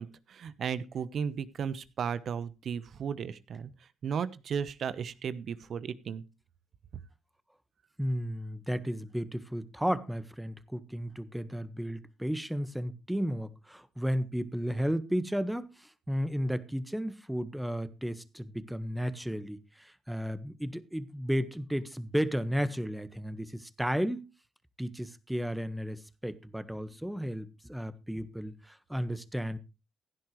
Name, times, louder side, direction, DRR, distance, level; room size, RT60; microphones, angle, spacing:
voice 1, 0.0-3.7 4.0-6.2, right 7 dB, 60° right, 1.1 m, -35 dB
voice 2, 8.0-24.3 24.8-29.6, equal, 5° right, 1.5 m, -33 dB
16.0 x 10.5 x 3.2 m
hypercardioid pair, 55°, 0 cm